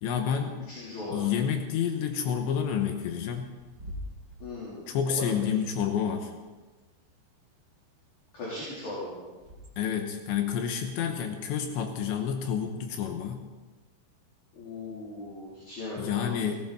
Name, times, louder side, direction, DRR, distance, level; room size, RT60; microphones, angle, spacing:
voice 1, 0.0-0.6 1.1-3.5 4.9-6.3 9.8-13.4 16.0-16.6, left 8 dB, 80° left, 5 dB, 3.2 m, -29 dB
voice 2, 0.7-1.3 4.4-5.5 8.3-9.2 14.5-16.5, left 2 dB, 40° left, -8 dB, 5.0 m, -38 dB
Bird / Wind, 2.8-10.1, equal, 50° right, 1.1 m, -48 dB
18.0 x 17.0 x 4.3 m, 1.2 s
omnidirectional pair, 5.3 m